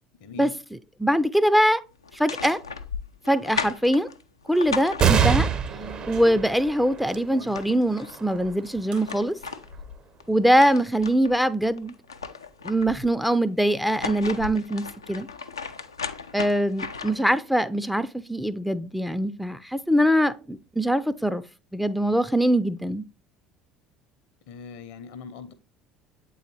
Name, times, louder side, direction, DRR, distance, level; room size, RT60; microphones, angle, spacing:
voice 1, 0.2-0.5 24.5-25.5, left 6 dB, 65° left, 0.7 m, -41 dB
voice 2, 1.0-1.8 2.1-2.6 3.3-4.1 4.5-5.5 6.1-9.3 10.3-11.9 12.6-15.3 16.3-21.4 21.7-23.0, equal, ahead, 0.4 m, -23 dB
sound 1, 2.0-5.6 7.0-7.1 7.3-8.2 8.7-11.4 11.8-13.1 13.7-17.3, left 5 dB, 90° left, 0.3 m, -36 dB
sound 2, 4.6-7.6 8.9-9.6, right 5 dB, 65° right, 1.4 m, -44 dB
sound 3, 5.0-11.9 12.5-12.6 13.7-14.3, right 7 dB, 40° right, 0.7 m, -28 dB
8.0 x 3.9 x 3.2 m
figure-of-eight pair, 65°, 2 cm